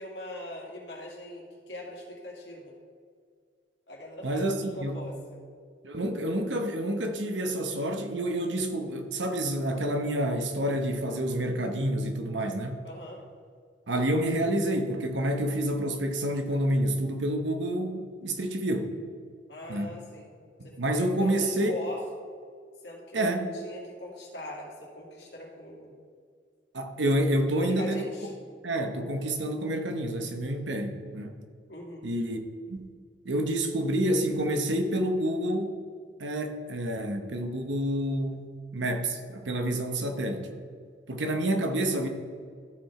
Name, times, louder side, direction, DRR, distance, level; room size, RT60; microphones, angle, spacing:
voice 1, 0.0-2.7 3.9-4.4 4.7-5.4 12.8-13.2 19.5-20.3 20.6-22.0 22.8-25.9 27.5-28.3 31.7-32.1, left 1 dB, 65° left, -2 dB, 2.3 m, -41 dB
voice 2, 4.2-5.0 5.8-12.8 13.9-18.9 19.7-20.0 20.6-21.8 23.1-23.6 26.7-28.0 28.6-31.3 32.0-32.4 32.7-32.9 33.2-35.8 36.2-40.5 41.1-42.1, right 1 dB, 90° right, 5 dB, 1.0 m, -28 dB
13.5 x 4.8 x 4.4 m, 2.1 s
head